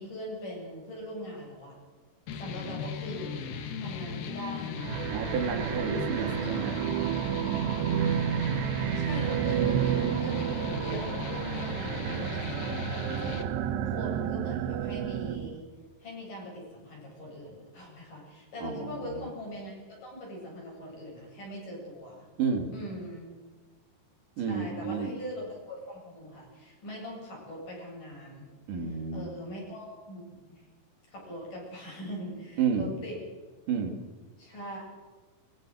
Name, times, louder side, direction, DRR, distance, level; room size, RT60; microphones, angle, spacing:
voice 1, 0.0-1.8 2.4-3.3 3.8-4.8 6.2-6.3 8.9-13.5 13.9-15.6 16.0-22.3 22.7-23.3 24.4-28.5 29.1-30.2 30.5-30.6 31.1-33.2 34.4-34.8, equal, 50° left, -2 dB, 9.7 m, -41 dB
sound 1, 2.3-13.4, left 6 dB, 70° left, 3.6 m, -38 dB
sound 2, 4.8-15.6, right 9 dB, 90° right, 3.1 m, -30 dB
voice 2, 5.1-6.8 18.6-19.3 22.4-22.7 24.4-25.1 28.7-29.3 32.6-32.9 33.7-34.0, right 6 dB, 55° right, 4 dB, 4.0 m, -31 dB
22.5 x 21.5 x 6.5 m, 1.4 s
omnidirectional pair, 4.8 m